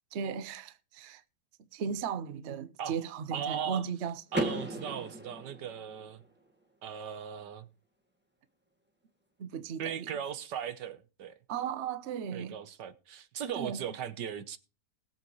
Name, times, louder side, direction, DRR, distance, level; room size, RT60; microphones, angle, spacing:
voice 1, 0.1-1.2 1.7-4.2 9.4-10.2 11.5-12.6 13.6-13.8, right 7 dB, 50° right, 0.9 m, -36 dB
voice 2, 3.3-3.8 4.3-6.2 6.8-7.7 9.8-11.3 12.3-14.6, right 8 dB, 85° right, 1.6 m, -38 dB
Car / Door, 4.3-6.3, right 2 dB, 5° right, 1.5 m, -35 dB
20.5 x 7.6 x 3.1 m
omnidirectional pair, 1.8 m